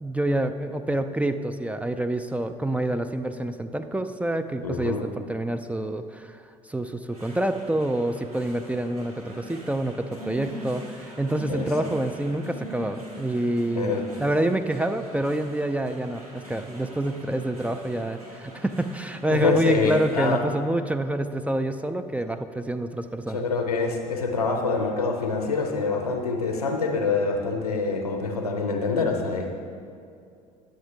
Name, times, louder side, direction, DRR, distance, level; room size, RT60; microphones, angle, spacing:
voice 1, 0.0-6.4 6.7-23.4, right 1 dB, 5° right, 7 dB, 0.4 m, -27 dB
voice 2, 4.6-5.0 11.5-11.6 13.8-14.1 19.3-20.4 23.3-29.5, left 4 dB, 85° left, 3 dB, 0.7 m, -25 dB
sound 1, 7.1-20.4, right 1 dB, 90° right, 1.2 m, -42 dB
10.0 x 7.8 x 3.3 m, 2.5 s
figure-of-eight pair, 60°, 19 cm